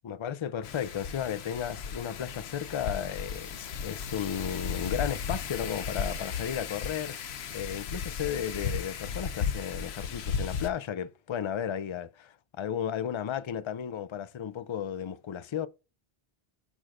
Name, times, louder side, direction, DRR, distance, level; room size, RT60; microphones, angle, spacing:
voice 1, 0.0-7.2 7.5-15.7, left 9 dB, 50° left, 0.3 m, -34 dB
Wind, 0.6-10.7, left 6 dB, 85° left, 1.0 m, -35 dB
11.5 x 6.1 x 2.5 m
omnidirectional pair, 1.0 m